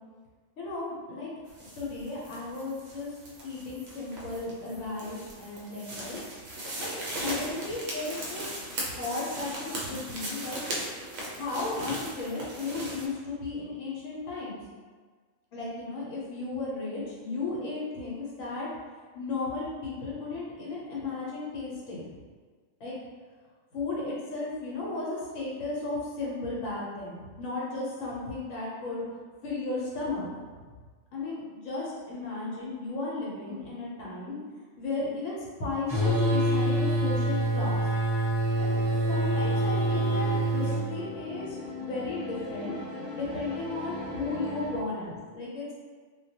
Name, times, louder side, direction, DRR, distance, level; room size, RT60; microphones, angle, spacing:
voice 1, 0.6-1.3 1.8-6.2 6.8-8.6 8.8-10.6 11.3-14.6 15.5-18.7 19.1-22.0 22.8-23.0 23.7-29.0 29.4-30.3 31.1-37.9 38.6-38.8 39.1-45.7, left 3 dB, 75° left, -5 dB, 1.0 m, -35 dB
sound 1, 1.5-13.1, right 1 dB, 65° right, 0.7 m, -38 dB
sound 2, 35.9-40.8, right 1 dB, 25° right, 0.9 m, -26 dB
sound 3, 38.5-44.8, left 2 dB, 55° left, 0.4 m, -39 dB
2.2 x 2.2 x 2.7 m, 1.5 s
omnidirectional pair, 1.4 m